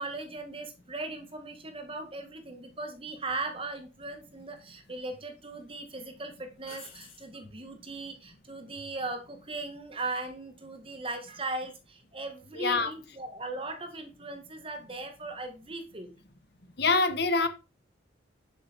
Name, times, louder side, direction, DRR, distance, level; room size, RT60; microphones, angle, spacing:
voice 1, 0.0-16.2, right 2 dB, 30° right, 2.0 m, -38 dB
sound 1, 3.3-3.4 4.6-5.2 5.6-5.7 6.6-7.3 10.4-10.8, left 5 dB, 30° left, 3.9 m, -51 dB
voice 2, 12.6-12.9 16.8-17.5, left 3 dB, 60° left, 1.4 m, -25 dB
10.5 x 6.7 x 4.7 m
head